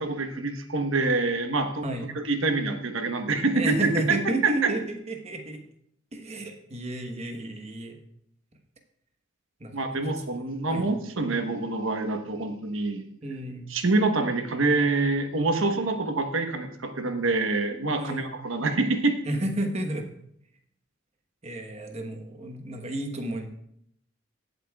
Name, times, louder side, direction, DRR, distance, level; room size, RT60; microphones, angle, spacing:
voice 1, 0.0-1.8 2.1-4.7 9.7-13.0 13.7-19.2, right 3 dB, 80° right, 6 dB, 1.1 m, -26 dB
voice 2, 3.5-5.6 6.1-8.0 9.6-9.9 10.3-10.9 13.2-13.7 18.0-18.3 19.3-20.1 21.4-23.5, right 1 dB, 30° right, 4 dB, 1.2 m, -32 dB
17.5 x 8.1 x 2.4 m, 0.75 s
head